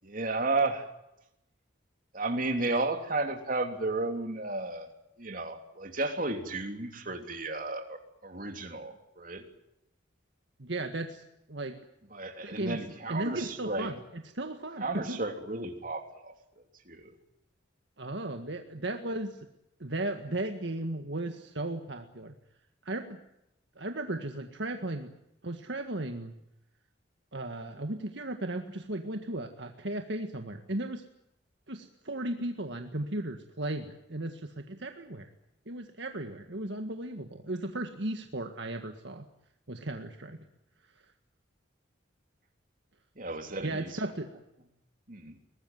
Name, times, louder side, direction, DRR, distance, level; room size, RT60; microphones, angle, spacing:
voice 1, 0.0-0.9 2.1-4.9 5.2-9.4 12.1-13.9 14.8-16.3 16.8-17.1 43.1-44.0 45.1-45.4, right 2 dB, 45° right, 5 dB, 3.2 m, -33 dB
voice 2, 10.6-11.2 11.5-11.7 12.4-12.8 13.1-15.2 18.0-19.4 19.8-22.3 22.8-23.2 23.8-25.1 25.4-26.3 27.3-31.0 31.7-35.3 35.7-39.3 39.7-40.4 43.6-44.3, right 1 dB, 65° right, 5 dB, 1.8 m, -35 dB
23.0 x 19.5 x 9.3 m, 0.85 s
head